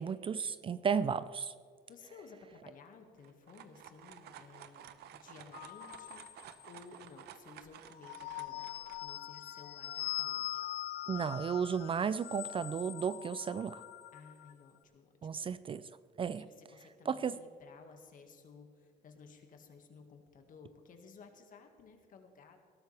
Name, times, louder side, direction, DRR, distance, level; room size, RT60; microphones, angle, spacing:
voice 1, 0.0-1.5 11.1-13.8 15.2-15.8 16.2-16.4 17.1-17.4, right 6 dB, 30° right, 15 dB, 0.4 m, -34 dB
voice 2, 1.9-10.6 14.1-15.5 16.3-22.6, left 5 dB, 55° left, 4 dB, 2.0 m, -56 dB
sound 1, 3.2-9.0, right 11 dB, 75° right, 0.8 m, -53 dB
sound 2, 5.5-7.0 7.9-14.5, left 14 dB, 70° left, 0.7 m, -42 dB
19.0 x 13.0 x 3.5 m, 2.1 s
cardioid pair, 110°, 17 cm